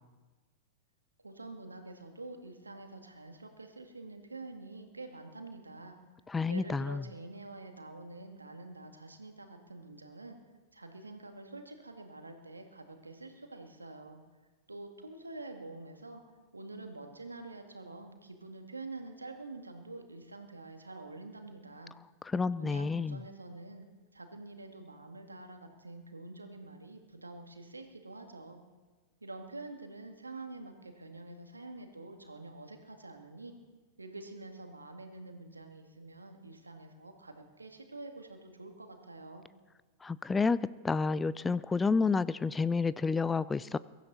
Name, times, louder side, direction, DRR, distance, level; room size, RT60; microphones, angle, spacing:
voice 1, 1.2-6.0 6.5-10.4 10.7-14.2 14.7-16.2 16.5-21.9 22.6-23.9 24.1-28.6 29.2-33.5 34.0-39.5, right 2 dB, 85° right, 5 dB, 2.0 m, -47 dB
voice 2, 6.3-7.0 22.3-23.2 40.0-40.6 40.8-43.8, left 4 dB, 15° left, 18 dB, 0.4 m, -29 dB
22.5 x 12.5 x 4.1 m, 1.3 s
figure-of-eight pair, 95°, 0 cm